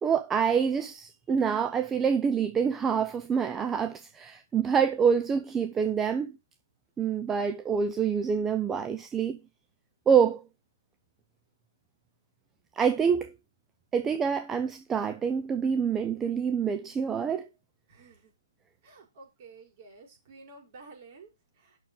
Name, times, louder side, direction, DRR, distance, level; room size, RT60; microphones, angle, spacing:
voice 1, 0.0-6.4 7.0-9.4 10.1-10.4 12.7-13.3 13.9-17.5, right 7 dB, 10° right, 0.6 m, -26 dB
voice 2, 17.9-18.3 18.8-21.8, right 3 dB, 30° right, 4.9 m, -52 dB
9.2 x 6.5 x 5.4 m
hypercardioid pair, 155°, 2 cm